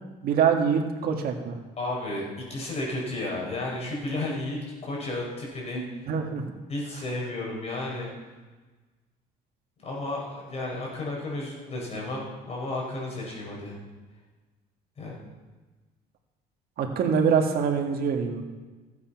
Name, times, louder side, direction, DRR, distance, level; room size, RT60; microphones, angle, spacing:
voice 1, 0.2-1.5 6.1-6.4 16.8-18.4, right 6 dB, 65° right, 3 dB, 1.7 m, -24 dB
voice 2, 1.8-5.9 6.7-8.1 9.8-13.8 15.0-15.2, left 2 dB, 40° left, -3 dB, 5.5 m, -33 dB
16.0 x 8.4 x 5.9 m, 1.3 s
cardioid pair, 110°, 17 cm